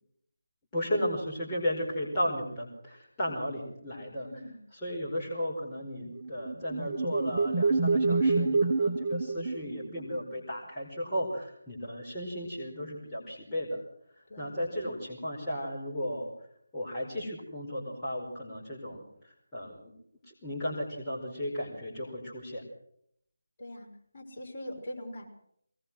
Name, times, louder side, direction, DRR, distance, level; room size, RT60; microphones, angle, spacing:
voice 1, 0.7-4.3 4.8-13.8 14.4-16.3 16.7-19.9 20.2-22.6, equal, 10° left, -8 dB, 5.1 m, -35 dB
voice 2, 4.2-4.6 14.3-14.6 23.6-25.3, left 1 dB, 30° left, -3 dB, 6.0 m, -42 dB
sound 1, 6.2-10.2, right 3 dB, 25° right, 1.3 m, -27 dB
22.5 x 20.0 x 6.4 m, 0.72 s
figure-of-eight pair, 155°, 0 cm